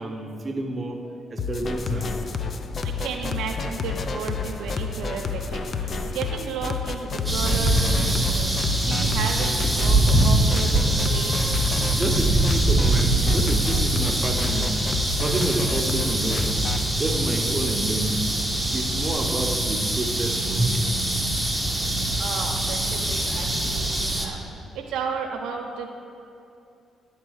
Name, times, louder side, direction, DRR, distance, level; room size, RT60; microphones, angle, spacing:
voice 1, 0.0-2.1 11.8-14.8 15.2-16.6 17.0-18.3 18.7-21.0, right 2 dB, 30° right, 2 dB, 0.8 m, -29 dB
sound 1, 1.4-16.9, left 5 dB, 45° left, 0.4 m, -31 dB
Wind, 1.7-7.2, equal, 70° left, 1.3 m, -41 dB
voice 2, 2.8-8.6 8.9-11.5 22.2-24.4 24.7-25.9, right 5 dB, 90° right, 2 dB, 0.6 m, -33 dB
sound 2, 7.2-24.3, right 1 dB, ahead, 0.9 m, -23 dB
9.5 x 3.7 x 6.3 m, 2.6 s
cardioid pair, 90°, 0 cm